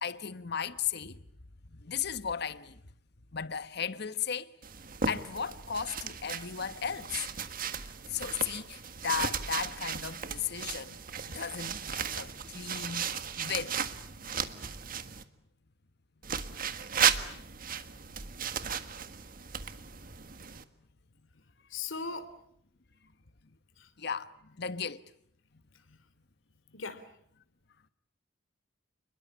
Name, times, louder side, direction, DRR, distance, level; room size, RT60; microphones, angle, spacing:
voice 1, 0.0-1.2 1.7-2.8 3.3-4.5 5.0-7.2 8.1-11.0 11.3-13.7 17.2-17.5 24.0-25.0, left 7 dB, 60° left, 1.2 m, -35 dB
sound 1, 4.6-15.2 16.2-20.6, right 7 dB, 45° right, 1.6 m, -35 dB
voice 2, 21.7-22.3 23.8-23.9 26.7-27.0, left 4 dB, 85° left, 3.0 m, -38 dB
29.0 x 21.5 x 8.5 m
head